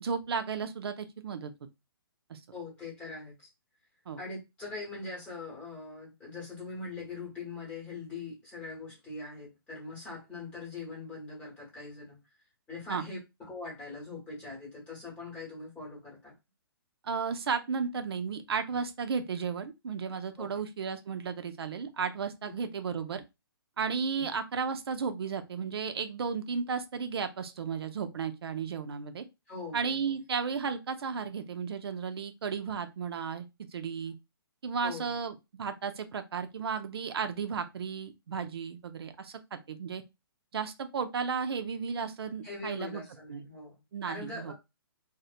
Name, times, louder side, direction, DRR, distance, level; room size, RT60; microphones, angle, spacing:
voice 1, 0.0-1.5 2.3-2.4 4.1-4.2 12.9-13.0 17.0-23.2 23.8-29.2 29.7-33.5 33.7-34.1 34.6-40.0 40.5-43.0 43.3-43.4 43.9-44.5, right 6 dB, 80° right, 0.5 m, -34 dB
voice 2, 2.5-3.5 4.2-12.2 12.7-16.3 20.4-20.6 24.2-24.3 29.5-30.1 34.8-35.2 42.4-43.8 44.1-44.5, left 3 dB, 10° left, 1.0 m, -42 dB
2.7 x 2.1 x 2.4 m
hypercardioid pair, 165°, 13 cm